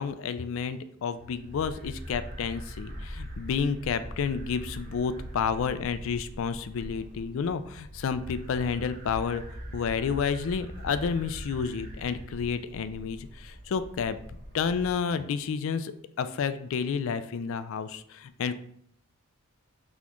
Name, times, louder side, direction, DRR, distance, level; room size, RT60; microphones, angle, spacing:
voice 1, 0.0-9.4 9.7-14.2 14.5-18.5, left 6 dB, 60° left, 11 dB, 0.3 m, -30 dB
sound 1, 1.2-14.9, equal, 40° right, 0.9 m, -42 dB
4.1 x 3.4 x 3.0 m, 0.67 s
head